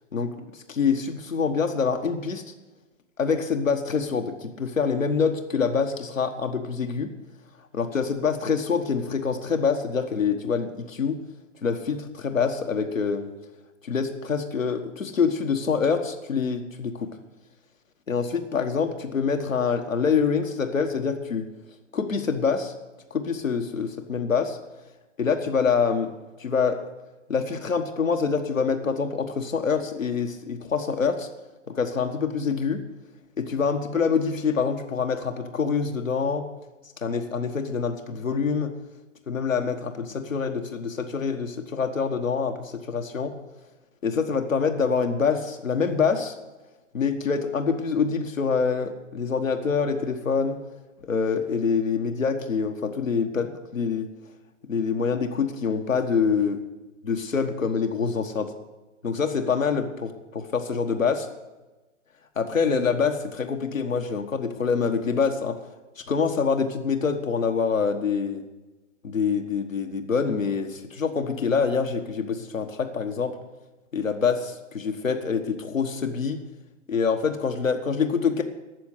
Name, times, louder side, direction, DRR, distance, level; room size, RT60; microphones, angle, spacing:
voice 1, 0.1-2.4 3.2-7.1 7.7-11.2 11.6-13.3 13.9-17.1 18.1-21.4 21.9-22.7 23.1-24.6 25.2-26.1 26.4-26.8 27.3-31.3 31.7-32.8 33.4-36.4 37.0-38.7 39.3-43.3 44.0-46.3 46.9-50.6 51.1-54.1 54.7-56.6 57.0-58.5 59.0-61.3 62.4-65.6 66.1-68.4 69.0-73.3 73.9-76.4 76.9-78.4, left 5 dB, 85° left, 5 dB, 1.5 m, -25 dB
13.0 x 7.5 x 8.1 m, 1.1 s
figure-of-eight pair, 135°, 38 cm